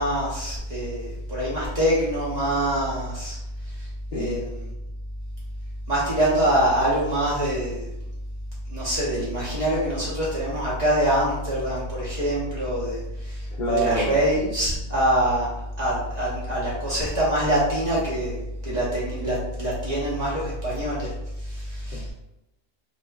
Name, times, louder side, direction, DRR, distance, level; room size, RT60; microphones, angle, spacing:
voice 1, 0.0-3.4 3.8-3.9 4.1-4.5 5.9-7.9 8.7-15.5 15.8-21.1 21.4-22.0, right 1 dB, 45° right, -7 dB, 0.6 m, -25 dB
voice 2, 13.5-14.1 21.9-22.1, right 2 dB, 75° left, -6 dB, 0.4 m, -26 dB
2.5 x 2.3 x 2.2 m, 0.90 s
omnidirectional pair, 1.4 m